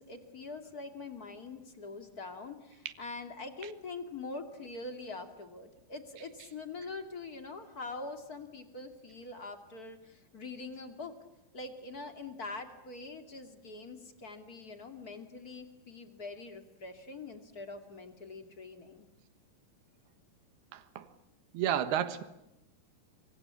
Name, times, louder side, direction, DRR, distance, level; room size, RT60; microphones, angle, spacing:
voice 1, 0.0-11.1 11.5-19.1, left 3 dB, 30° left, 7 dB, 2.0 m, -44 dB
voice 2, 20.7-21.1 21.5-22.2, right 10 dB, 75° right, 12 dB, 3.2 m, -31 dB
26.0 x 24.5 x 8.5 m, 0.91 s
omnidirectional pair, 4.9 m